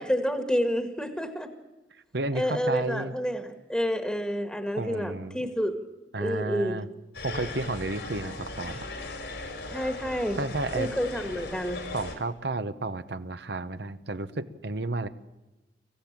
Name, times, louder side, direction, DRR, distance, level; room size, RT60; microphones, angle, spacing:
voice 1, 0.0-1.5 2.3-5.8 6.2-6.8 9.7-10.4 10.7-11.8, equal, 5° left, 7 dB, 1.6 m, -29 dB
voice 2, 2.1-3.2 4.8-5.4 6.1-6.9 7.2-8.8 10.4-10.9 11.9-15.1, right 2 dB, 70° right, 11 dB, 1.1 m, -32 dB
sound 1, 7.1-12.2, left 2 dB, 75° left, 4.0 m, -38 dB
23.5 x 15.0 x 8.8 m, 1.1 s
head